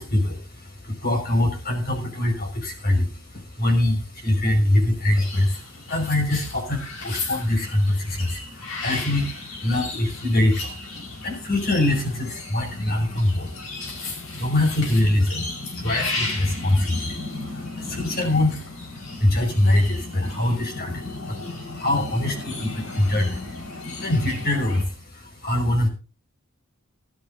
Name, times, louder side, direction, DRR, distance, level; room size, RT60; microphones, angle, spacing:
voice 1, 0.0-25.9, left 1 dB, 50° left, 3 dB, 5.4 m, -24 dB
sound 1, 5.1-24.8, left 3 dB, 75° left, 5.0 m, -35 dB
16.0 x 13.0 x 2.7 m, 0.34 s
head